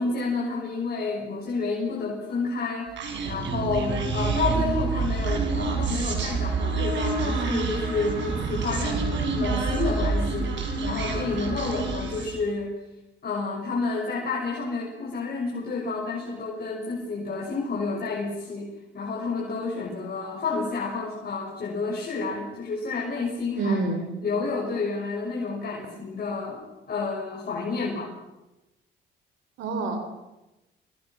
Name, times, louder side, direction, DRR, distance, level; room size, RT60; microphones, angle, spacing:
voice 1, 0.0-10.5 10.8-12.8 13.2-23.8 24.2-28.1, left 4 dB, 50° left, -3 dB, 7.0 m, -30 dB
Human voice, 3.0-12.4, right 4 dB, 65° right, 5.9 m, -27 dB
voice 2, 23.6-24.2 29.6-30.0, right 3 dB, 85° right, 6 dB, 3.9 m, -27 dB
28.5 x 25.0 x 6.2 m, 0.99 s
cardioid pair, 90°, 20 cm